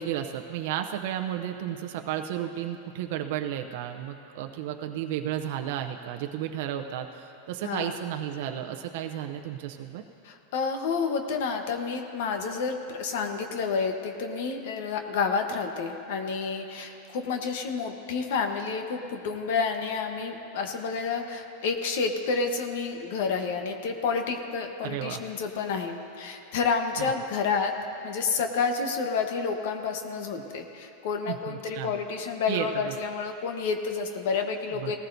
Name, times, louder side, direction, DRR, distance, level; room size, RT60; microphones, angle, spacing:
voice 1, 0.0-10.0 24.8-25.2 27.0-27.1 31.3-31.9 32.5-32.9 34.8-34.9, right 11 dB, 65° right, 5 dB, 0.6 m, -33 dB
voice 2, 7.6-8.0 10.2-27.8 28.0-35.0, left 5 dB, 70° left, 5 dB, 1.1 m, -29 dB
18.5 x 14.5 x 2.7 m, 2.8 s
supercardioid pair, 130°, 0 cm